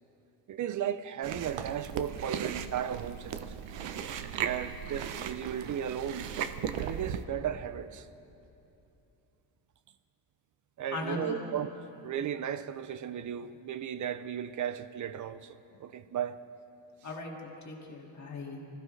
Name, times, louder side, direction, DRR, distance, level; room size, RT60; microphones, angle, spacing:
voice 1, 0.5-3.5 4.4-6.3 6.6-8.1 10.8-11.7 12.0-16.4, right 9 dB, 40° right, 0.5 m, -35 dB
Chewing mastication, 1.2-7.3, right 8 dB, 65° right, 0.8 m, -37 dB
voice 2, 10.9-11.4 17.0-18.6, left 2 dB, 35° left, 2.0 m, -38 dB
25.0 x 15.5 x 3.2 m
cardioid pair, 155°, 47 cm